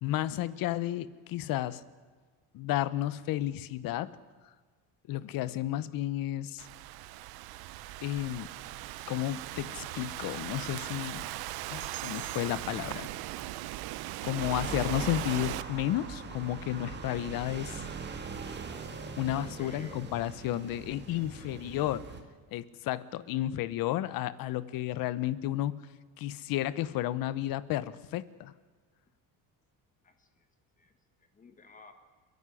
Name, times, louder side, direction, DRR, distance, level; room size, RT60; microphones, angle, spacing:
voice 1, 0.0-1.8 2.5-4.1 5.1-6.7 8.0-8.5 9.0-11.3 11.7-13.1 14.2-17.8 19.2-22.0 22.5-25.8 26.2-28.5, left 14 dB, 60° left, 17 dB, 1.0 m, -32 dB
Thunderstorm / Rain, 6.6-15.6, right 15 dB, 65° right, 0.9 m, -39 dB
sound 1, 11.8-15.8, right 15 dB, 90° right, 1.4 m, -52 dB
sound 2, 14.4-22.2, right 5 dB, 25° right, 1.8 m, -41 dB
voice 2, 19.4-20.1 21.1-21.3 23.1-23.4 30.0-30.5 30.8-30.9 31.3-31.9, left 4 dB, 20° left, 7 dB, 1.3 m, -53 dB
30.0 x 11.0 x 9.9 m, 1.5 s
cardioid pair, 180°, 40 cm